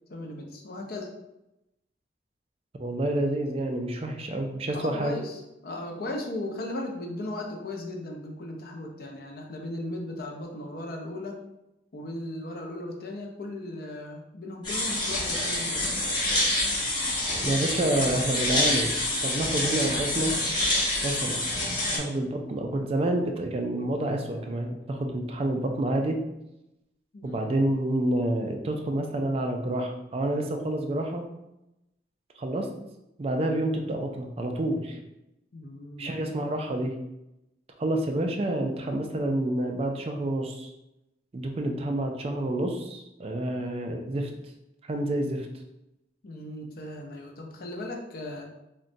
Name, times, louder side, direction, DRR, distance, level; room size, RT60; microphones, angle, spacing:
voice 1, 0.1-1.1 4.7-11.4 11.9-15.9 21.9-22.1 27.1-27.5 35.5-36.1 41.6-41.7 46.2-48.5, left 1 dB, 55° left, 2 dB, 0.5 m, -37 dB
voice 2, 2.8-5.1 17.4-19.0 19.2-20.3 21.0-21.5 22.0-26.2 27.2-31.2 32.4-32.7 33.2-35.0 36.0-36.9 37.8-40.7 41.3-44.3 44.8-45.5, right 1 dB, 30° right, 3 dB, 0.3 m, -28 dB
sound 1, 14.6-22.0, left 1 dB, 25° left, 0.8 m, -27 dB
3.8 x 2.2 x 2.5 m, 0.90 s
head